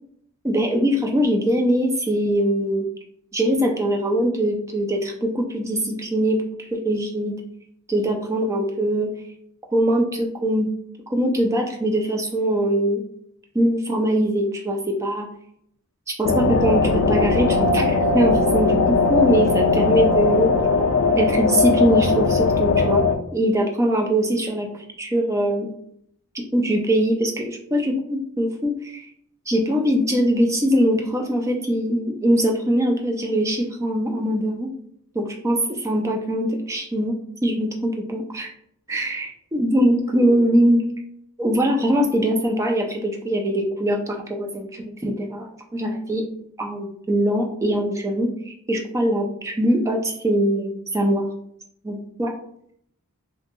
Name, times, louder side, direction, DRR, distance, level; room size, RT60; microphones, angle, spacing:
voice 1, 0.4-2.9 3.3-6.4 6.7-7.4 7.9-9.1 9.7-10.7 11.1-13.0 13.5-15.3 16.2-20.5 21.1-23.0 23.3-24.7 25.0-25.7 26.3-29.1 29.5-34.7 35.1-37.2 37.4-38.5 38.9-40.8 41.4-45.5 45.7-46.3 46.6-51.3 51.8-52.3, equal, 15° right, 1 dB, 0.3 m, -22 dB
sound 1, 16.2-23.2, left 4 dB, 65° left, 0.3 m, -19 dB
2.8 x 2.6 x 2.4 m, 0.69 s
head